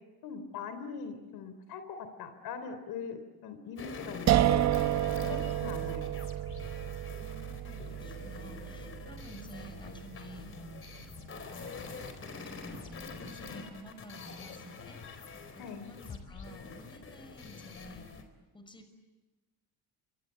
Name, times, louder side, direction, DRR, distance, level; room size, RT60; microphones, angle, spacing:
voice 1, 0.2-4.7 5.1-6.1 15.6-15.9, left 5 dB, 70° left, 9 dB, 3.5 m, -41 dB
sound 1, 3.8-18.2, left 4 dB, 35° left, 4.1 m, -46 dB
sound 2, 4.3-11.2, right 13 dB, 45° right, 0.9 m, -31 dB
voice 2, 7.1-15.3 15.6-18.1 18.5-18.9, equal, 10° left, 7 dB, 5.9 m, -51 dB
28.5 x 24.5 x 8.2 m, 1.1 s
cardioid pair, 125°, 38 cm